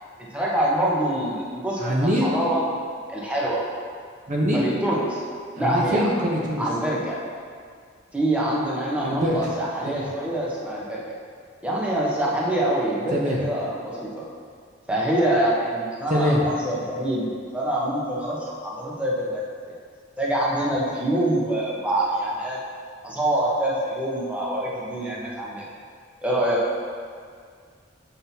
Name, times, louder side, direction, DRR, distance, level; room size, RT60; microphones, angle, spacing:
voice 1, 0.3-2.6 3.1-3.6 4.5-5.2 5.6-6.1 6.6-7.2 8.1-11.1 11.6-14.3 14.9-19.7 20.2-22.6 23.0-25.7 26.2-26.6, right 1 dB, 5° right, -5 dB, 0.9 m, -25 dB
voice 2, 1.8-2.3 4.3-4.7 5.6-6.6 9.0-9.5 9.9-10.0 13.1-13.4 16.1-16.4, equal, 40° right, -3 dB, 0.7 m, -23 dB
7.5 x 5.7 x 2.7 m, 2.1 s
head